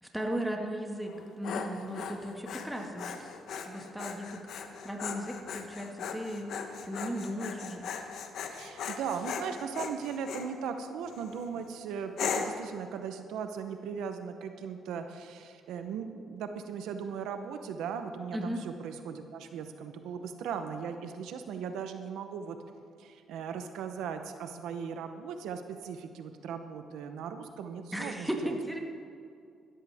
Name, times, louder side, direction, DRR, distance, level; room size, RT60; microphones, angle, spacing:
voice 1, 0.0-3.1 3.5-6.5 6.8-7.9 18.3-18.6 27.9-28.8, equal, 5° right, 1 dB, 1.9 m, -36 dB
Dog, 1.1-10.5 11.1-11.5 12.2-12.7, left 6 dB, 70° left, 1.1 m, -38 dB
voice 2, 8.6-22.6 23.0-28.6, right 7 dB, 85° right, 7 dB, 0.9 m, -38 dB
15.5 x 13.5 x 3.6 m, 2.4 s
cardioid pair, 90°, 0 cm